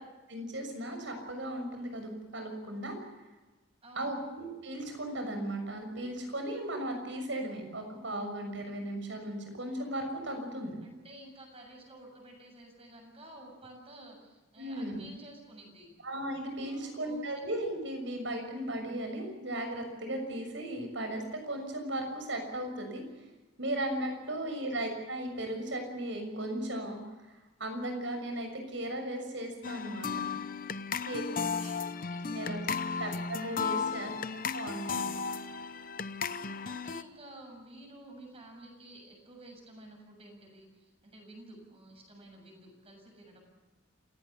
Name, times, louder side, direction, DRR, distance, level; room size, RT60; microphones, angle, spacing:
voice 1, 0.3-2.9 3.9-10.8 14.6-15.0 16.0-23.0 23.6-27.0 27.6-30.3 31.0-31.2 32.2-32.6 33.0-35.1, right 1 dB, 70° right, 5 dB, 6.5 m, -36 dB
voice 2, 3.8-4.2 10.8-15.9 16.6-17.2 24.2-24.9 31.2-33.3 34.0-34.5 36.4-43.4, right 1 dB, 30° right, 2 dB, 7.3 m, -52 dB
sound 1, 29.6-37.0, left 5 dB, 45° left, 0.8 m, -35 dB
28.0 x 17.0 x 7.1 m, 1.1 s
head